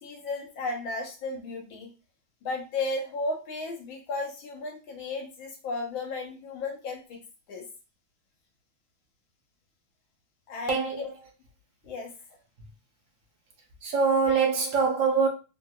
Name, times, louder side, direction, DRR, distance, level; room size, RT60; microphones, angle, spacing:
voice 1, 0.0-1.9 2.4-7.2 7.5-7.6 10.5-11.1 11.8-12.1, left 3 dB, 75° left, 1.7 m, -34 dB
voice 2, 10.7-11.1 13.8-15.3, right 5 dB, 60° right, 0.8 m, -24 dB
3.4 x 2.8 x 2.3 m
omnidirectional pair, 2.2 m